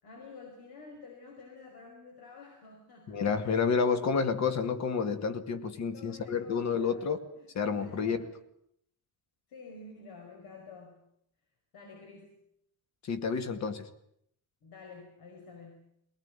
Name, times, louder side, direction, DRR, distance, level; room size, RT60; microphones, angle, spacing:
voice 1, 0.0-3.6 5.9-7.5 7.8-8.4 9.5-11.0 11.7-12.4 14.6-15.9, left 4 dB, 75° left, 2 dB, 5.4 m, -50 dB
voice 2, 3.1-7.2 7.5-8.2 13.0-13.9, left 5 dB, 45° left, 9 dB, 2.2 m, -29 dB
22.0 x 19.5 x 9.8 m, 0.73 s
cardioid pair, 175°, 38 cm